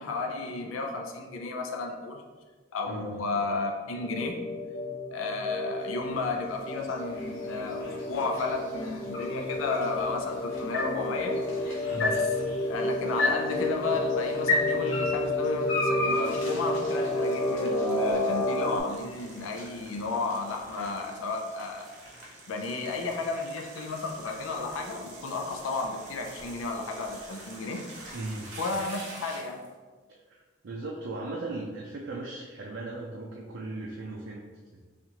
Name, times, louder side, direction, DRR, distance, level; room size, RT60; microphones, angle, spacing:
voice 1, 0.0-2.2 2.7-4.4 5.1-12.2 12.7-21.9 22.2-28.1 28.6-29.7, left 3 dB, 85° left, 2 dB, 0.5 m, -33 dB
voice 2, 2.9-3.2 11.9-12.1 28.1-28.5 30.1-34.4, right 2 dB, 65° right, -2 dB, 0.4 m, -37 dB
sound 1, 3.9-18.8, left 2 dB, 20° left, 0.5 m, -31 dB
sound 2, 5.6-21.8, left 2 dB, 70° left, 1.0 m, -36 dB
sound 3, 16.7-29.7, right 2 dB, 80° right, 0.9 m, -47 dB
4.3 x 2.4 x 2.8 m, 1.4 s
head